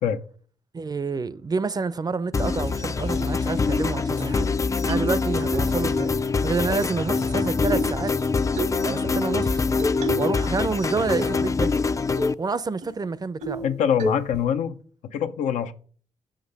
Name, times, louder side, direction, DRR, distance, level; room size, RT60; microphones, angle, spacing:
voice 1, 0.7-4.5 4.8-6.1 6.4-8.1 8.8-9.6 10.2-11.7 12.4-13.6, right 4 dB, 35° right, 0.5 m, -28 dB
sound 1, 2.3-9.5, left 3 dB, 65° left, 1.4 m, -34 dB
sound 2, 2.3-12.3, left 4 dB, 25° left, 0.4 m, -25 dB
sound 3, 2.5-2.6 3.1-3.3 3.7-3.8 4.1-4.5 4.9-5.6 6.7-7.3 7.7-8.0 8.6-8.8 9.8-10.4 10.7-11.4 11.7-11.8 12.2-12.4 12.8-12.9 13.4-13.7 14.0-14.4, equal, 85° right, 1.4 m, -30 dB
voice 2, 13.6-14.7 15.0-15.7, left 8 dB, 85° left, 0.7 m, -24 dB
6.9 x 5.2 x 4.0 m
supercardioid pair, 55°, 12 cm